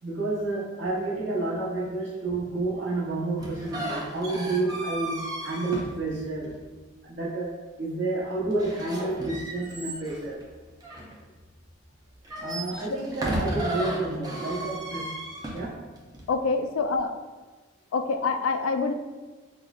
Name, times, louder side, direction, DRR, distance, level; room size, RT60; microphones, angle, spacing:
voice 1, 0.0-6.6 7.0-10.4 12.4-15.2 15.5-15.9, right 2 dB, 60° right, -5 dB, 0.9 m, -30 dB
sound 1, 3.4-6.7 8.5-11.6 12.1-16.3, right 1 dB, 20° right, 0.4 m, -34 dB
voice 2, 16.3-17.1 17.9-18.9, left 4 dB, 85° left, 7 dB, 0.3 m, -26 dB
5.0 x 2.0 x 2.3 m, 1.3 s
head